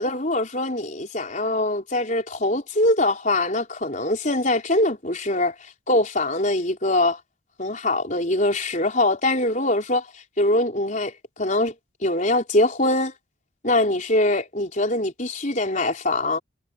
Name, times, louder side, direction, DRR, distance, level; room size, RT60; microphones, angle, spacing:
voice 1, 0.0-5.5 5.9-7.2 7.6-10.1 10.4-11.7 12.0-13.1 13.6-16.4, left 1 dB, 40° left, 4.5 m, -23 dB
head